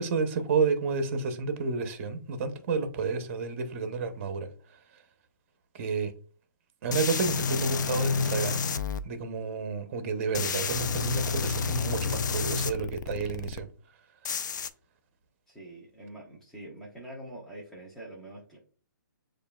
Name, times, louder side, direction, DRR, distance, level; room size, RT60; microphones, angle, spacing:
voice 1, 0.0-5.0 5.7-6.1 6.8-8.6 9.0-13.7, right 4 dB, 40° right, 0.7 m, -30 dB
sound 1, 6.9-9.0 10.3-13.6 14.2-14.7, left 5 dB, 65° left, 0.4 m, -30 dB
voice 2, 15.5-18.6, right 1 dB, 5° left, 0.7 m, -45 dB
6.6 x 2.4 x 2.2 m
hypercardioid pair, 150°, 11 cm